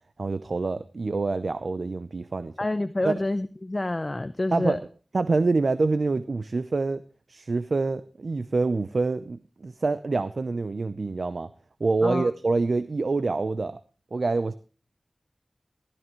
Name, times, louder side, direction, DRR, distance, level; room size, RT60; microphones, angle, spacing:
voice 1, 0.2-2.5 3.0-3.1 4.5-4.8 5.1-7.0 7.3-11.5 11.8-13.8 14.1-14.5, right 3 dB, 75° right, 13 dB, 0.7 m, -26 dB
voice 2, 2.6-4.8 12.0-12.3, left 2 dB, 40° left, 12 dB, 0.7 m, -28 dB
16.0 x 13.5 x 3.1 m, 0.35 s
wide cardioid pair, 50°, 0 cm